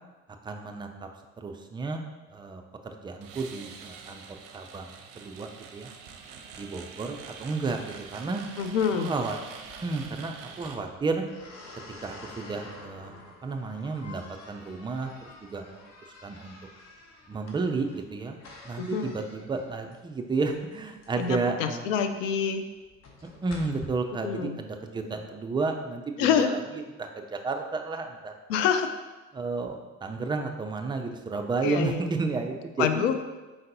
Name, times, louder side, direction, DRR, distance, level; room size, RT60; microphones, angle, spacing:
voice 1, 0.4-0.9 1.4-2.0 2.3-4.2 4.5-5.9 6.6-8.4 9.0-9.4 9.8-11.2 12.0-13.2 13.4-15.1 15.4-15.9 16.2-16.5 17.3-18.4 18.6-21.8 23.4-26.6 27.0-28.7 29.3-33.0, right 3 dB, 15° right, 4 dB, 0.3 m, -32 dB
sound 1, 3.2-10.8, right 6 dB, 55° right, 0.6 m, -45 dB
voice 2, 8.6-9.1 18.8-19.2 21.2-22.7 24.2-24.6 26.2-26.5 28.5-28.9 31.6-32.0 32.8-33.2, left 7 dB, 75° left, 8 dB, 0.5 m, -26 dB
sound 2, 9.6-23.9, left 3 dB, 40° left, 0.9 m, -49 dB
4.5 x 3.8 x 2.7 m, 1.2 s
figure-of-eight pair, 60°, 40 cm